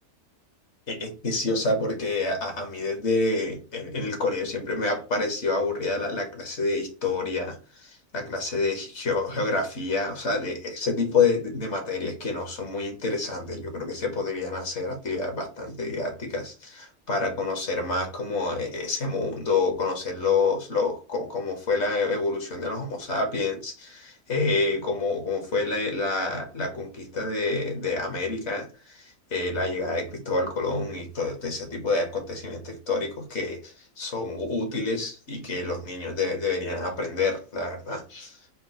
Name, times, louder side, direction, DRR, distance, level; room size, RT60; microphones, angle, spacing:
voice 1, 0.9-38.4, left 3 dB, 55° left, 3 dB, 1.4 m, -28 dB
4.4 x 2.2 x 4.1 m, 0.35 s
omnidirectional pair, 1.5 m